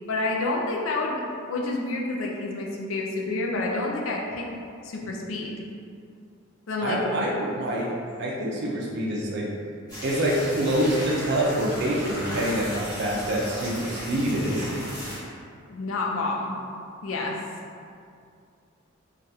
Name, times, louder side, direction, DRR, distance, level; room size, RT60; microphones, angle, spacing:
voice 1, 0.1-1.2 1.5-4.5 4.8-5.5 6.7-7.0 15.7-16.6 17.0-17.4, left 2 dB, 75° left, -1 dB, 0.4 m, -28 dB
voice 2, 6.8-7.9 8.2-9.5 10.0-14.7, right 1 dB, 55° right, -3 dB, 0.4 m, -26 dB
sound 1, 9.9-15.2, equal, 20° left, 1.2 m, -36 dB
3.4 x 2.3 x 2.7 m, 2.4 s
head